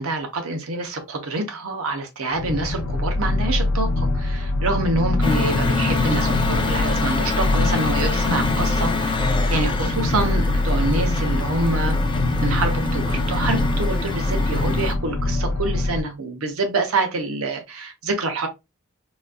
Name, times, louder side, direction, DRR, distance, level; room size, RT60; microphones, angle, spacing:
voice 1, 0.0-12.0 12.4-18.5, right 2 dB, 70° right, 0.7 m, -26 dB
sound 1, 2.3-16.0, left 2 dB, 80° left, 0.5 m, -23 dB
sound 2, 5.2-14.9, left 3 dB, 20° left, 0.4 m, -26 dB
3.9 x 2.4 x 2.2 m
head